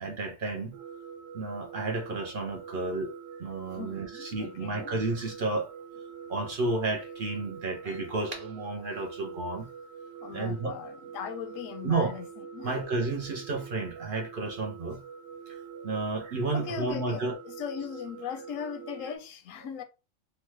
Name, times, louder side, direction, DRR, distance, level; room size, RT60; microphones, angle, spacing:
voice 1, 0.0-0.8 1.3-3.1 3.4-5.7 6.3-9.7 10.3-10.8 11.8-12.2 12.6-15.0 15.8-17.4, right 3 dB, 60° right, 0.6 m, -31 dB
sound 1, 0.7-19.2, right 6 dB, 75° right, 1.3 m, -45 dB
voice 2, 3.7-4.9 10.2-12.3 12.5-12.9 16.5-19.8, left 8 dB, 85° left, 1.0 m, -39 dB
3.1 x 2.2 x 3.0 m
omnidirectional pair, 1.3 m